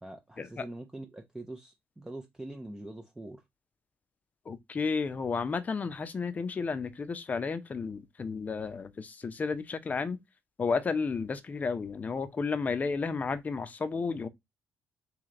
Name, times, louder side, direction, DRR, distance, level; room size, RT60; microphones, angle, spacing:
voice 1, 0.0-3.4, right 1 dB, 10° right, 0.7 m, -43 dB
voice 2, 4.5-10.2 10.6-14.3, left 5 dB, 30° left, 0.7 m, -32 dB
3.2 x 3.2 x 3.8 m
cardioid pair, 90°, 5 cm